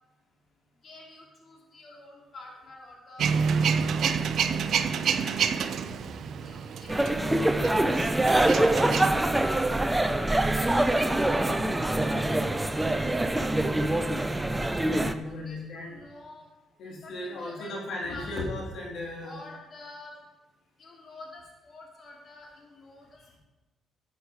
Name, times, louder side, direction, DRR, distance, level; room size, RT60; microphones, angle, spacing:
voice 1, 0.8-3.6 4.0-4.1 4.6-5.5 6.4-11.4 11.8-12.6 13.7-13.8 15.3-16.5 17.0-18.3 19.2-20.1 20.8-23.4, left 2 dB, 50° left, -2 dB, 2.6 m, -49 dB
Male speech man speaking / Vehicle / Engine starting, 3.2-9.1, right 6 dB, 65° right, 0.6 m, -28 dB
sound 1, 6.9-15.1, right 1 dB, 10° right, 0.7 m, -24 dB
voice 2, 14.8-16.0 16.8-19.4, left 2 dB, 75° left, -2 dB, 2.8 m, -36 dB
11.5 x 8.2 x 4.9 m, 1.1 s
cardioid pair, 90°, 0 cm